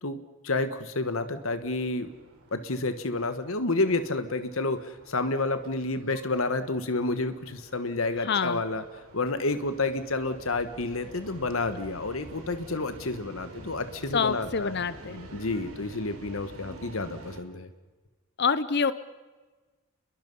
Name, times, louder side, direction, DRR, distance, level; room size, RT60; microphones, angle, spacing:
voice 1, 0.0-2.1 2.5-8.8 9.1-14.8 15.3-17.7, left 2 dB, 75° left, 10 dB, 1.4 m, -30 dB
sound 1, 1.2-17.4, right 1 dB, 85° right, 4.0 m, -48 dB
voice 2, 8.2-8.6 14.1-15.3 18.4-18.9, left 5 dB, 55° left, 14 dB, 0.7 m, -26 dB
29.5 x 22.5 x 5.5 m, 1.3 s
head